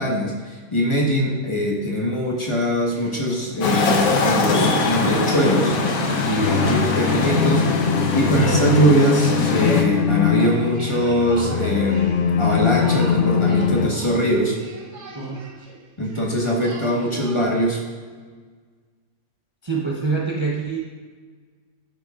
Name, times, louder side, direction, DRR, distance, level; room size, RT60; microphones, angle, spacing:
voice 1, 0.0-5.7 6.2-7.7 8.1-14.6 16.0-17.8, equal, 20° left, -2 dB, 1.3 m, -21 dB
sound 1, 2.8-17.6, right 3 dB, 60° right, 1.2 m, -38 dB
sound 2, 3.6-9.8, left 3 dB, 90° left, 1.4 m, -22 dB
sound 3, 6.4-13.9, left 8 dB, 70° left, 0.5 m, -22 dB
voice 2, 6.4-7.0 15.1-15.6 19.6-20.8, right 4 dB, 25° right, -3 dB, 0.8 m, -26 dB
13.0 x 6.5 x 2.5 m, 1.5 s
omnidirectional pair, 1.4 m